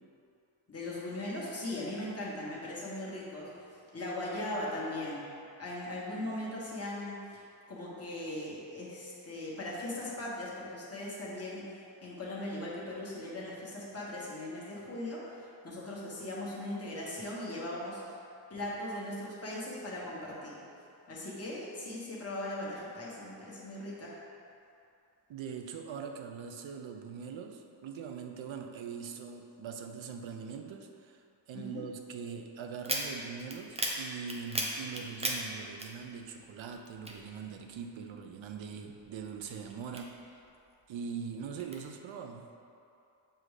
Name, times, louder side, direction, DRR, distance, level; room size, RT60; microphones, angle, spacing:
voice 1, 0.7-5.2 5.6-15.2 15.6-18.2 18.5-20.6 21.1-24.1 31.5-31.8, left 1 dB, 30° left, -6 dB, 1.3 m, -39 dB
voice 2, 25.3-40.4 40.9-42.5, right 6 dB, 75° right, 5 dB, 0.6 m, -42 dB
sound 1, 32.8-36.5 36.7-38.0 38.5-40.6 41.0-41.8, right 1 dB, 15° right, 0.5 m, -37 dB
7.7 x 2.6 x 4.8 m, 2.6 s
wide cardioid pair, 145°, 46 cm